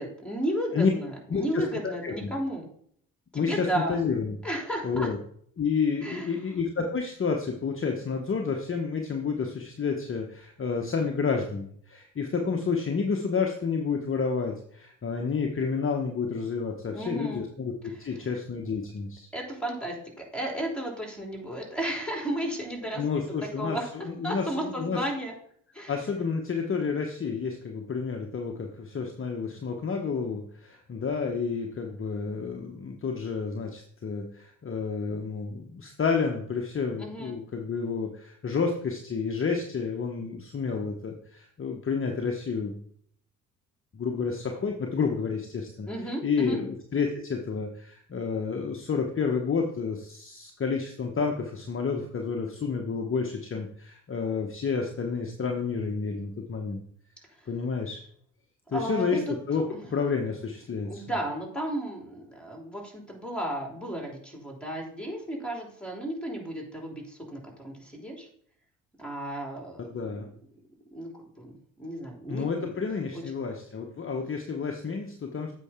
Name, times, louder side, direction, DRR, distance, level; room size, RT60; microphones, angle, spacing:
voice 1, 0.0-2.6 3.3-4.0 4.4-5.1 6.0-6.4 16.9-17.4 17.8-17.9 19.3-23.3 23.6-25.3 25.7-25.9 37.0-37.4 45.9-46.6 58.7-59.3 59.7-59.8 60.9-68.3 69.0-70.2 70.9-71.1 71.4-72.7, right 1 dB, ahead, 0 dB, 3.2 m, -34 dB
voice 2, 1.3-2.3 3.3-4.4 4.8-5.2 5.6-17.7 18.0-19.3 23.0-23.8 24.0-25.0 25.9-42.8 43.9-45.9 46.2-56.8 57.5-58.0 58.7-59.6 59.9-61.0 69.8-70.3 72.3-75.5, left 5 dB, 30° left, 2 dB, 1.1 m, -30 dB
8.1 x 5.6 x 3.7 m, 0.63 s
hypercardioid pair, 55°, 40 cm